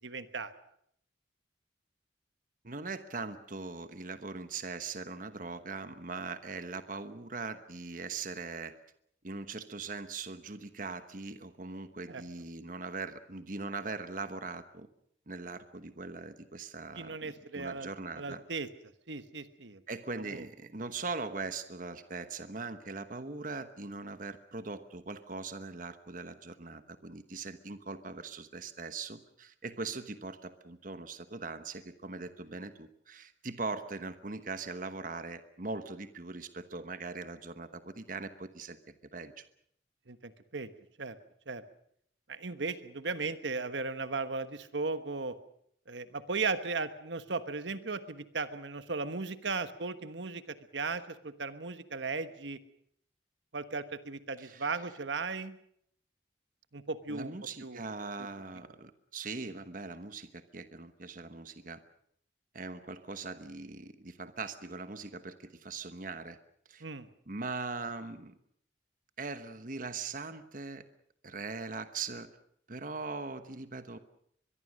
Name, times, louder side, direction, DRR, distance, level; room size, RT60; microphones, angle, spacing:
voice 1, 0.0-0.5 12.1-12.2 17.0-17.9 18.2-18.7 19.1-19.8 20.1-20.4 40.1-40.7 41.0-41.2 41.5-41.6 42.3-45.4 45.9-52.6 53.5-55.5 56.7-57.3 57.6-57.9 66.8-67.1, right 4 dB, 75° right, 11 dB, 1.3 m, -36 dB
voice 2, 2.6-8.7 9.2-14.9 15.3-18.4 19.9-38.8 39.1-39.4 54.4-54.7 57.1-61.8 62.5-66.4 66.7-66.8 67.3-68.3 69.2-70.9 71.2-72.3 72.7-74.0, right 3 dB, 45° right, 10 dB, 1.2 m, -41 dB
23.0 x 22.5 x 6.4 m, 0.69 s
head